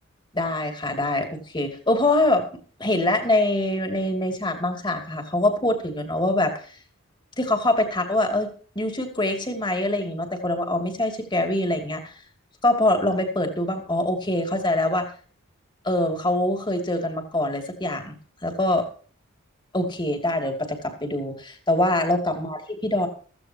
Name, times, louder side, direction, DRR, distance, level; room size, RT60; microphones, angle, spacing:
voice 1, 0.3-2.5 2.8-6.7 7.4-8.5 8.7-12.1 12.6-15.1 15.8-18.1 18.4-18.9 19.7-23.1, left 1 dB, 20° left, 5 dB, 2.7 m, -24 dB
16.0 x 15.0 x 2.9 m, 0.41 s
head